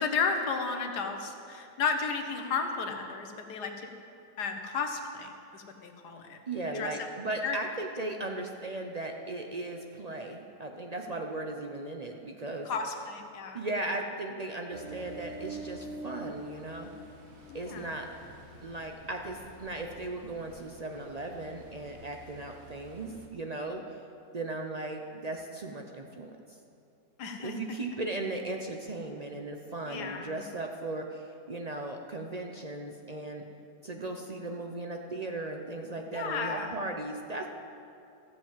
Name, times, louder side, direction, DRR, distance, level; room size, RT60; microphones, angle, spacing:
voice 1, 0.0-3.9 4.4-6.4 6.7-7.1 7.4-7.6 12.6-13.6 17.5-17.9 27.2-27.8 29.8-30.3 36.1-36.7, left 5 dB, 70° left, 5 dB, 1.7 m, -33 dB
voice 2, 6.5-12.7 13.5-16.9 17.5-18.1 18.6-23.8 24.3-26.4 27.4-33.4 33.8-37.5, right 2 dB, 60° right, 3 dB, 0.4 m, -37 dB
Ocean, 14.7-23.3, right 2 dB, 45° right, 1.4 m, -47 dB
14.0 x 7.8 x 7.3 m, 2.5 s
omnidirectional pair, 1.8 m